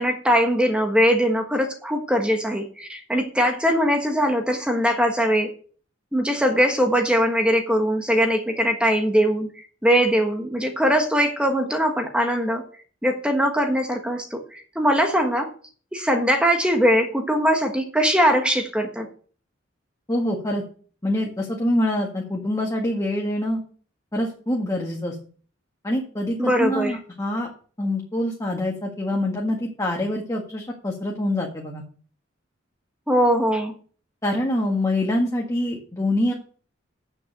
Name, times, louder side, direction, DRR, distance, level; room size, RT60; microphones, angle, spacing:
voice 1, 0.0-5.5 6.1-12.6 13.0-15.5 15.9-19.1 26.4-27.0 33.1-33.7, equal, 5° right, 4 dB, 1.3 m, -21 dB
voice 2, 20.1-20.6 21.0-23.6 24.1-25.2 25.8-27.5 27.8-31.8 34.2-36.3, left 1 dB, 20° left, -1 dB, 1.8 m, -25 dB
8.3 x 7.0 x 6.6 m, 0.42 s
head